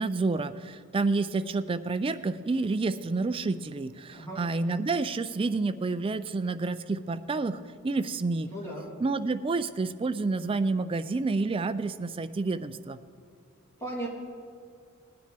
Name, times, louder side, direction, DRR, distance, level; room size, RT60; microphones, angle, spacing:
voice 1, 0.0-8.5 9.0-13.0, right 3 dB, 25° right, 11 dB, 0.3 m, -29 dB
voice 2, 8.5-8.9 13.8-14.1, right 1 dB, 15° left, -5 dB, 2.9 m, -36 dB
19.0 x 9.4 x 3.4 m, 2.4 s
head